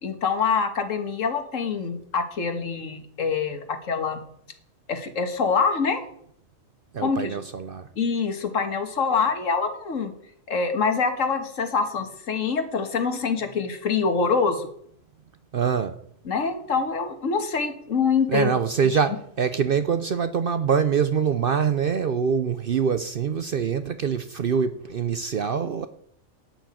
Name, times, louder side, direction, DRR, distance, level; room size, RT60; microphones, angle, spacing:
voice 1, 0.0-4.2 4.9-6.0 7.0-7.4 8.0-10.1 10.5-14.7 16.3-18.5, left 5 dB, 70° left, 8 dB, 1.8 m, -25 dB
voice 2, 6.9-7.9 15.5-16.0 18.3-25.9, right 6 dB, 55° right, 12 dB, 0.7 m, -24 dB
11.5 x 6.0 x 8.4 m, 0.67 s
omnidirectional pair, 1.4 m